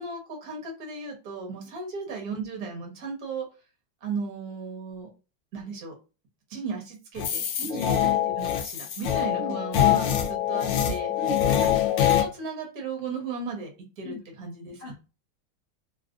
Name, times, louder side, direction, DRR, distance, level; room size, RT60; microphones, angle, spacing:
voice 1, 0.0-3.5 4.0-5.1 5.5-5.9 6.5-7.5 7.7-11.1 11.5-11.6 12.0-14.9, right 4 dB, 55° right, 1 dB, 1.3 m, -36 dB
sound 1, 7.2-12.2, left 10 dB, 75° left, 1.3 m, -24 dB
voice 2, 11.2-11.7 14.0-14.2 14.8-14.9, left 1 dB, 60° left, -3 dB, 0.7 m, -36 dB
3.4 x 2.4 x 2.4 m, 0.31 s
omnidirectional pair, 2.2 m